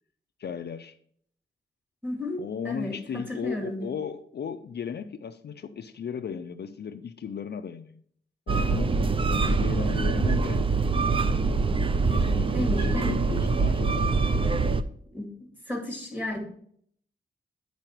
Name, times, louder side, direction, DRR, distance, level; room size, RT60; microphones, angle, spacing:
voice 1, 0.4-0.9 2.4-8.0 8.5-9.0 9.3-10.6 12.1-14.1, left 7 dB, 55° left, 8 dB, 0.4 m, -36 dB
voice 2, 2.0-3.9 12.5-13.2 15.1-16.4, left 1 dB, 10° right, 0 dB, 2.1 m, -33 dB
sound 1, 8.5-14.8, right 4 dB, 25° right, 0.4 m, -24 dB
9.3 x 4.8 x 4.5 m, 0.63 s
wide cardioid pair, 155°, 20 cm